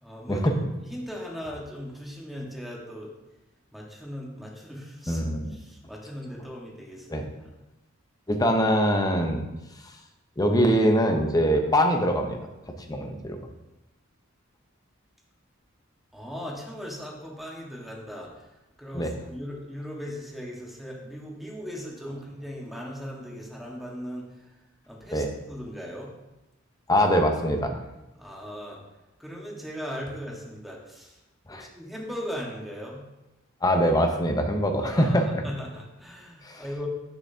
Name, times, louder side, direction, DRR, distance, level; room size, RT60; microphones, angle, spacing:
voice 1, 0.0-3.1 3.7-7.5 16.1-18.5 18.8-24.6 24.9-26.1 28.1-28.8 29.2-31.2 31.5-33.0 34.8-36.9, equal, ahead, -3 dB, 1.4 m, -38 dB
voice 2, 5.1-5.6 7.1-7.2 8.3-9.4 10.4-12.4 12.9-13.4 18.9-19.1 25.1-25.3 26.9-27.7 31.5-31.7 33.6-35.4 36.4-36.6, equal, 20° left, 4 dB, 0.8 m, -23 dB
8.9 x 6.8 x 2.8 m, 0.99 s
head